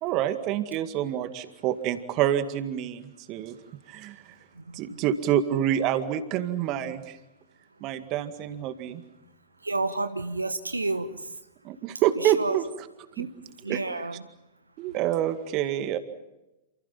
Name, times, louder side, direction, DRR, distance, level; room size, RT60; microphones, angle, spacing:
voice 1, 0.0-3.6 3.9-4.3 4.7-7.2 7.8-9.0 11.6-12.7 13.2-13.3 13.7-14.0 14.8-16.0, right 11 dB, 35° right, 10 dB, 2.1 m, -27 dB
voice 2, 9.6-11.2 12.2-12.6 13.2-13.3 13.6-14.2, right 2 dB, 80° right, 11 dB, 1.1 m, -30 dB
29.0 x 28.5 x 5.7 m, 0.97 s
figure-of-eight pair, 95°, 0 cm